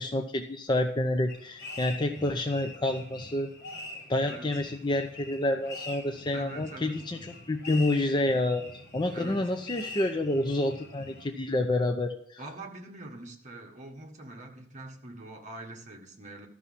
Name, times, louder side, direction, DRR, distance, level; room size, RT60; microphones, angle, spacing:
voice 1, 0.0-3.5 4.1-7.2 7.5-8.7 8.9-12.4, left 1 dB, 20° left, 4 dB, 0.5 m, -28 dB
sound 1, 1.3-11.3, left 2 dB, 55° left, 3.9 m, -44 dB
voice 2, 6.3-7.0 9.1-9.4 12.4-16.5, right 2 dB, 35° right, 1 dB, 1.5 m, -43 dB
12.5 x 6.2 x 5.6 m, 0.68 s
head